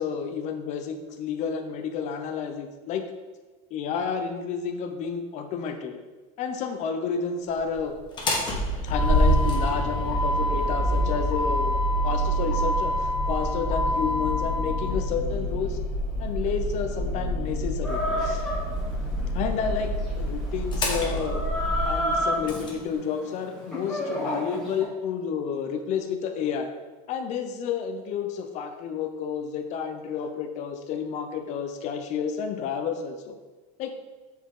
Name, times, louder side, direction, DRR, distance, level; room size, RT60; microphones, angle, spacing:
voice 1, 0.0-3.0 3.7-6.0 6.4-8.0 8.8-15.8 16.2-18.4 19.3-21.5 21.9-26.7 27.1-33.4 33.8-33.9, left 6 dB, 45° left, 6 dB, 0.7 m, -30 dB
Motor vehicle (road), 8.0-22.7, equal, 25° left, 1.2 m, -26 dB
Chicken rooster, 17.8-24.8, left 1 dB, 5° left, 2.2 m, -32 dB
7.0 x 4.6 x 3.7 m, 1.2 s
cardioid pair, 150°, 17 cm